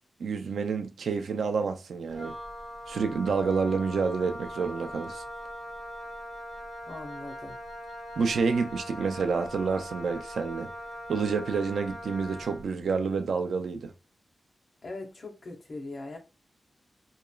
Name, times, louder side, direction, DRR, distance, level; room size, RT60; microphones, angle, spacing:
voice 1, 0.2-2.3 2.9-5.2 8.2-10.7 11.1-13.9, right 5 dB, 85° right, 0.3 m, -28 dB
Wind instrument woodwind instrument, 2.1-12.7, equal, 20° right, 1.2 m, -41 dB
voice 2, 6.8-7.6 14.8-16.2, left 2 dB, 40° left, 0.6 m, -40 dB
2.8 x 2.3 x 2.2 m
wide cardioid pair, 175°, 0 cm